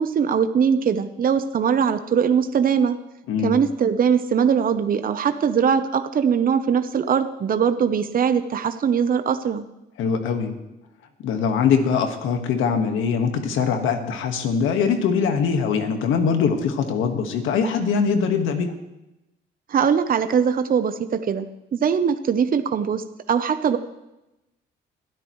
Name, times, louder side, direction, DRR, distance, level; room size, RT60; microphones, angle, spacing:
voice 1, 0.0-3.0 3.4-9.6 19.7-21.5 21.7-23.8, right 7 dB, 45° right, 9 dB, 0.9 m, -21 dB
voice 2, 10.0-10.5 11.2-18.7, left 6 dB, 90° left, 6 dB, 1.7 m, -22 dB
22.0 x 13.0 x 3.2 m, 0.94 s
cardioid pair, 90°, 20 cm